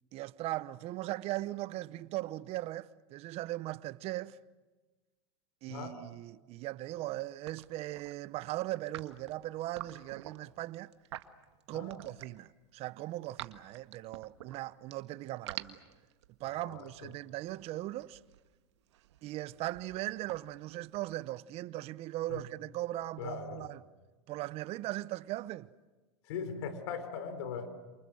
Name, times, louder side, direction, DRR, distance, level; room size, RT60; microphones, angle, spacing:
voice 1, 0.1-4.4 5.6-10.9 11.7-15.8 16.4-18.2 19.2-23.8 24.3-25.7, right 16 dB, 45° right, 0.9 m, -39 dB
sound 1, 7.0-8.1 8.8-12.5 12.9-14.9 15.3-21.4, right 14 dB, 85° right, 1.6 m, -48 dB
voice 2, 11.7-12.0 16.5-17.1 22.3-22.4 23.2-23.7 26.3-27.7, left 6 dB, 75° left, 4.4 m, -40 dB
28.5 x 28.5 x 6.5 m
supercardioid pair, 120°, 14 cm